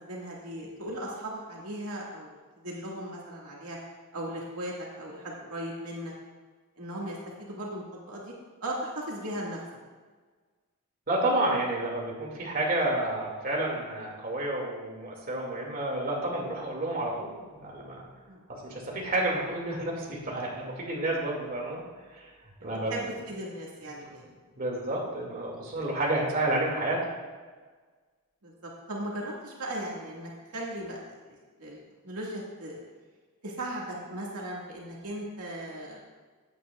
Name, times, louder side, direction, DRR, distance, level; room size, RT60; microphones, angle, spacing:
voice 1, 0.0-3.8 4.1-6.1 6.8-8.3 8.6-9.6 18.3-18.4 22.9-24.2 28.4-32.8 33.4-36.0, right 1 dB, 80° right, -3 dB, 2.0 m, -37 dB
voice 2, 11.1-18.0 18.6-21.8 22.1-22.3 22.6-22.9 24.6-27.0, right 1 dB, 40° right, -3 dB, 2.3 m, -30 dB
16.0 x 8.8 x 2.4 m, 1.4 s
head